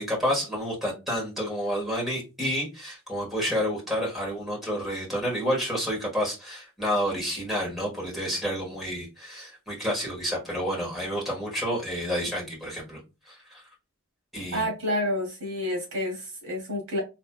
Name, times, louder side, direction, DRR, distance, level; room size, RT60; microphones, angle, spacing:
voice 1, 0.0-13.0 13.3-13.6 14.3-14.7, equal, ahead, 1.4 m, -29 dB
voice 2, 14.5-17.0, left 1 dB, 80° right, 2.3 m, -29 dB
4.3 x 3.1 x 2.2 m
head